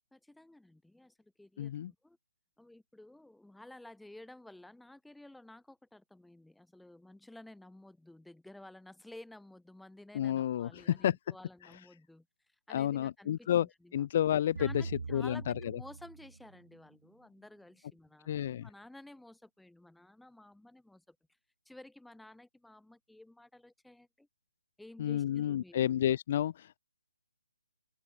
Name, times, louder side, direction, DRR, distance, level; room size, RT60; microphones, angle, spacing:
voice 1, 0.1-2.2 2.6-12.3 12.7-13.5 13.8-14.1 14.6-21.2 21.7-24.3 24.8-25.9, left 1 dB, ahead, 2.5 m, -53 dB
voice 2, 1.6-1.9 10.1-11.2 12.7-13.7 13.9-15.7 18.3-18.7 25.0-26.8, left 11 dB, 40° left, 0.4 m, -30 dB
sound 1, 14.6-16.8, right 4 dB, 70° right, 0.4 m, -42 dB
open air
hypercardioid pair, 155°, 0 cm